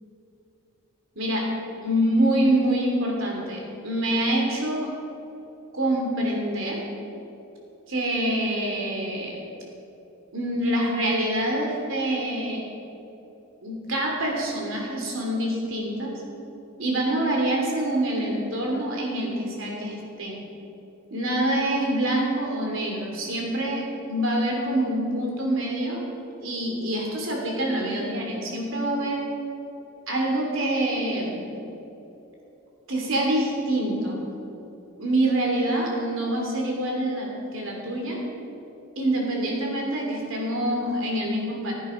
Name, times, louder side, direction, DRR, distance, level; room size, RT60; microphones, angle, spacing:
voice 1, 1.8-4.9 5.7-6.8 7.9-9.4 10.3-12.6 13.6-16.1 16.8-20.4 21.1-26.0 26.4-29.2 30.1-31.5 32.9-34.2 35.0-38.2 39.0-41.7, right 1 dB, 70° right, -1 dB, 3.0 m, -26 dB
15.5 x 9.3 x 5.2 m, 3.0 s
head